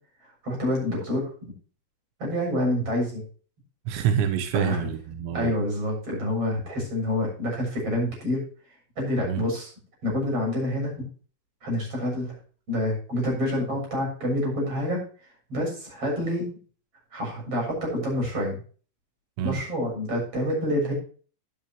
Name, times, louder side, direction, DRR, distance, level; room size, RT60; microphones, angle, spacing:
voice 1, 0.2-1.5 2.2-3.2 4.5-4.9 5.3-8.4 9.0-9.7 10.0-11.1 11.6-12.4 12.7-15.0 15.5-16.5 17.1-18.6 19.4-20.9, left 1 dB, 35° right, -1 dB, 8.2 m, -27 dB
voice 2, 3.9-5.6 9.2-9.4 19.4-19.6, right 8 dB, 85° right, 7 dB, 3.3 m, -26 dB
13.5 x 10.5 x 3.1 m, 0.40 s
omnidirectional pair, 5.0 m